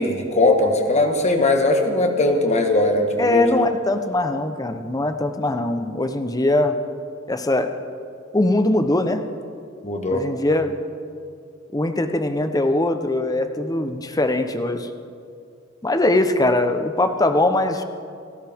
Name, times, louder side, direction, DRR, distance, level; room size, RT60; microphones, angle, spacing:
voice 1, 0.0-3.7 9.8-10.3, left 2 dB, 35° left, 4 dB, 1.5 m, -19 dB
voice 2, 3.2-6.8 7.3-7.7 8.3-9.2 10.1-10.7 11.7-14.9 15.8-17.8, left 2 dB, 20° left, 7 dB, 0.8 m, -21 dB
29.0 x 12.5 x 3.6 m, 2.4 s
head